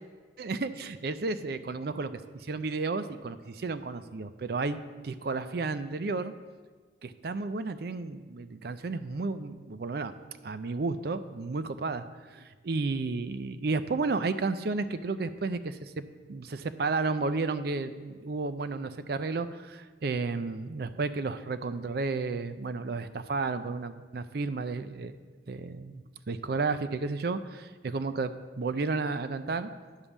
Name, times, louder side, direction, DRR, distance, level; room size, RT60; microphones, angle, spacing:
voice 1, 0.4-4.8 5.0-6.3 7.0-10.1 10.4-25.2 25.5-29.7, right 3 dB, 55° right, 12 dB, 0.4 m, -32 dB
9.9 x 5.3 x 7.1 m, 1.4 s
head